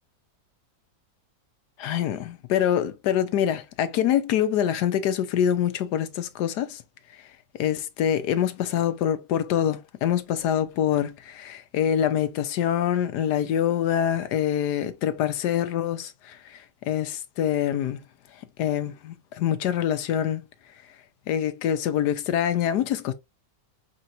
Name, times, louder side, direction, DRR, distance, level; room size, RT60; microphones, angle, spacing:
voice 1, 1.8-6.8 7.6-18.0 18.6-20.4 21.3-23.1, left 10 dB, 80° left, 1.3 m, -25 dB
4.5 x 3.8 x 2.5 m
omnidirectional pair, 1.8 m